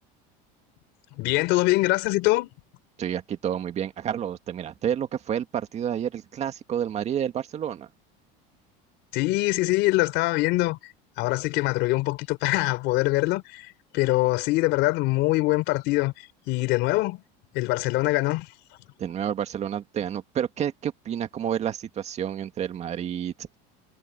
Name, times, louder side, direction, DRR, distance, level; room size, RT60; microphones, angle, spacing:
voice 1, 1.1-2.5 9.1-10.8 11.2-16.1 16.5-17.2 17.5-18.5, left 20 dB, 60° left, 3.7 m, -23 dB
voice 2, 3.0-7.9 19.0-23.6, right 9 dB, 30° right, 1.9 m, -29 dB
cardioid pair, 145°, 21 cm